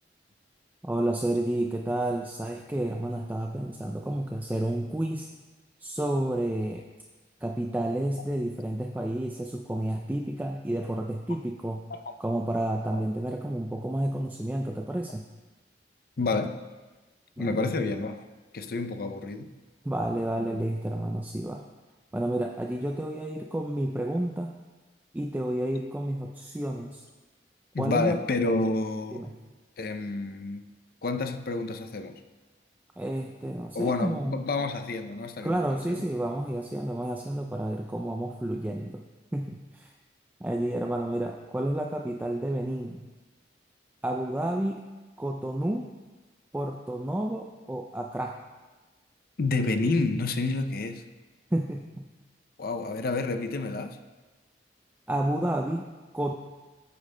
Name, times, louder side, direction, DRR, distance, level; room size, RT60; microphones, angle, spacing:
voice 1, 0.8-5.3 5.8-6.8 7.4-11.8 12.2-15.3 17.4-17.7 19.8-21.6 22.1-24.5 25.1-27.0 27.8-28.2 29.1-29.3 33.0-34.4 35.4-39.0 39.3-39.9 40.4-43.1 44.0-44.8 45.2-45.9 46.5-48.4 51.5-52.1 55.1-56.3, right 1 dB, 10° right, 2 dB, 0.3 m, -30 dB
voice 2, 16.2-16.6 17.4-18.2 18.5-19.5 27.7-29.2 29.8-30.7 31.0-32.2 33.7-35.6 35.9-36.0 49.4-51.0 52.6-54.0, left 3 dB, 55° left, 7 dB, 0.5 m, -29 dB
14.0 x 8.3 x 2.2 m, 1.2 s
head